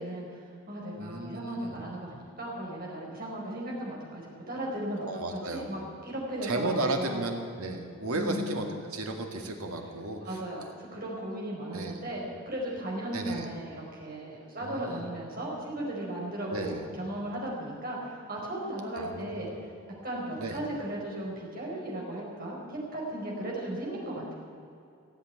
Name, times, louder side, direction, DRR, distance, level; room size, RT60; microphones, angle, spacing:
voice 1, 0.0-5.0 5.3-7.3 8.1-8.4 10.2-19.5 20.0-24.3, right 1 dB, 40° right, -4 dB, 4.6 m, -36 dB
voice 2, 1.0-1.8 5.0-5.8 6.4-10.4 11.7-12.0 13.1-13.5 14.6-15.1 16.5-16.8 19.0-19.3 20.4-20.6, right 2 dB, 85° right, 3 dB, 2.0 m, -34 dB
17.0 x 8.2 x 9.6 m, 2.5 s
head